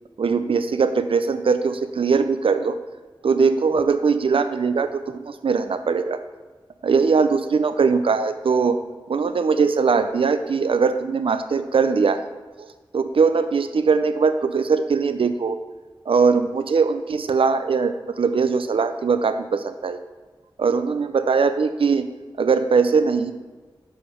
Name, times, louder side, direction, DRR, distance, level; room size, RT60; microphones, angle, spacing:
voice 1, 0.2-2.8 3.2-6.2 6.8-8.8 9.1-12.2 12.6-12.7 12.9-15.6 16.1-20.0 20.6-22.1 22.4-23.3, right 5 dB, 85° right, 10 dB, 0.5 m, -21 dB
6.9 x 5.0 x 5.0 m, 1.3 s
wide cardioid pair, 65°, 9 cm